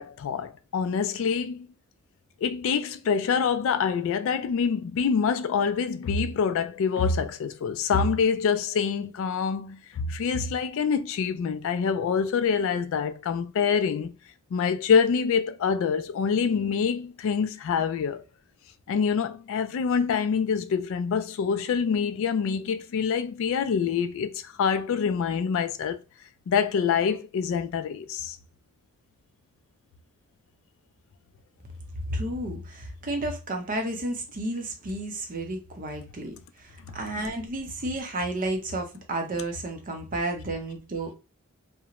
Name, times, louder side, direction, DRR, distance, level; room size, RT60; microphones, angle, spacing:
voice 1, 0.0-1.7 2.4-14.1 14.5-18.2 18.9-26.0 26.5-28.4, left 6 dB, 60° left, 0.3 m, -26 dB
voice 2, 32.1-41.1, right 1 dB, 40° right, 0.6 m, -32 dB
2.5 x 2.0 x 2.9 m
head